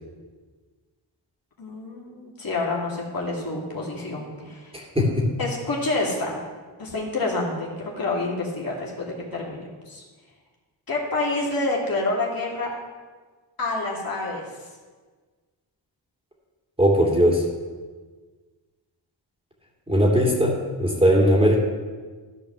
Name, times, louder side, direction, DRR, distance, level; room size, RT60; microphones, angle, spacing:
voice 1, 1.6-4.7 5.4-6.4 6.8-10.0 10.9-12.7 13.6-14.4, left 2 dB, 50° left, -3 dB, 2.5 m, -28 dB
voice 2, 4.7-5.2 16.8-17.4 19.9-20.5 20.8-21.6, equal, 10° right, -3 dB, 2.8 m, -19 dB
13.5 x 5.1 x 6.8 m, 1.4 s
cardioid pair, 90°, 46 cm